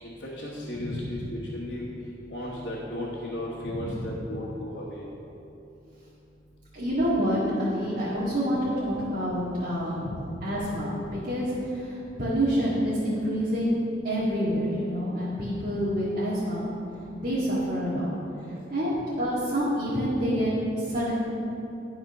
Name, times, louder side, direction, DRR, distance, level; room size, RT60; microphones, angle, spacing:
voice 1, 0.0-1.9 2.3-5.0, left 1 dB, 65° left, -6 dB, 1.3 m, -35 dB
voice 2, 0.7-1.2 3.7-4.0 6.7-16.7 17.2-18.1 18.5-21.2, equal, 45° right, -10 dB, 1.8 m, -27 dB
11.5 x 4.4 x 5.5 m, 2.8 s
head